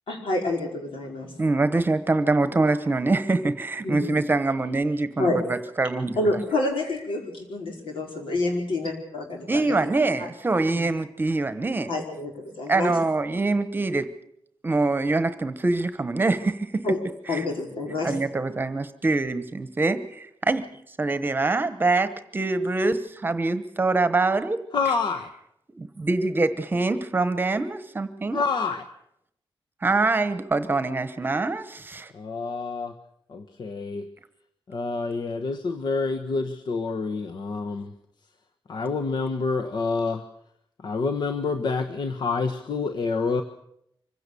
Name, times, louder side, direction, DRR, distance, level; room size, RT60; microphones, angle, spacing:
voice 1, 0.1-1.3 3.8-4.2 5.2-5.4 6.2-9.8 10.2-10.3 10.7-10.8 11.9-12.9 16.8-17.0 17.3-18.2, left 2 dB, 90° left, 1 dB, 5.1 m, -28 dB
voice 2, 1.4-6.2 9.5-11.9 12.7-14.1 14.6-16.8 17.3-17.5 18.0-20.7 21.0-24.6 25.7-28.4 29.8-32.1, right 3 dB, 25° right, 11 dB, 1.1 m, -24 dB
voice 3, 24.7-25.3 28.3-28.8 32.1-32.9 33.3-34.0 34.7-37.9 38.7-40.2 40.8-43.4, left 4 dB, 60° left, 6 dB, 1.2 m, -27 dB
25.0 x 16.0 x 6.9 m, 0.75 s
wide cardioid pair, 160°, 9 cm